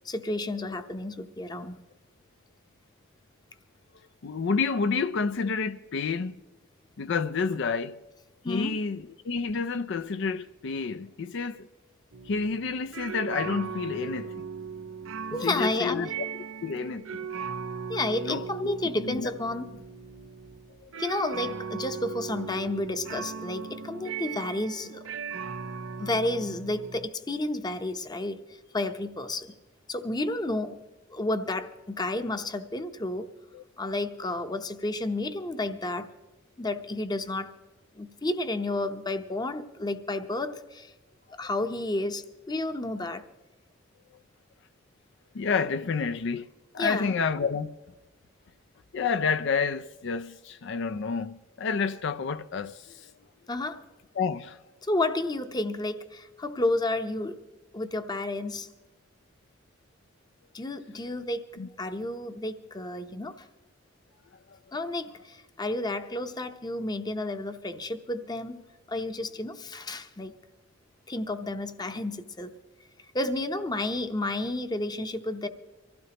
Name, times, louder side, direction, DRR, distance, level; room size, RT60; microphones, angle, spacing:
voice 1, 0.0-1.7 8.4-8.7 15.3-16.1 17.9-19.7 21.0-25.0 26.0-28.4 28.7-29.5 29.9-30.8 31.1-33.3 33.8-36.1 36.6-37.5 37.9-40.9 41.4-43.2 46.8-47.1 53.5-53.9 54.8-57.4 57.7-58.7 60.5-61.4 61.8-63.5 64.7-68.6 68.9-70.3 71.1-72.5 73.1-75.5, left 2 dB, 20° left, 0.8 m, -31 dB
voice 2, 4.2-6.4 7.0-8.0 8.5-11.7 12.2-14.5 15.4-16.1 16.6-17.3 18.2-19.3 20.8-20.9 33.5-33.6 45.3-46.5 46.7-47.7 48.9-53.1 54.2-54.6 61.6-61.7 64.5-64.6, left 5 dB, 65° left, 0.5 m, -29 dB
sound 1, 12.1-27.1, right 6 dB, 85° right, 0.7 m, -38 dB
24.5 x 15.5 x 2.9 m
head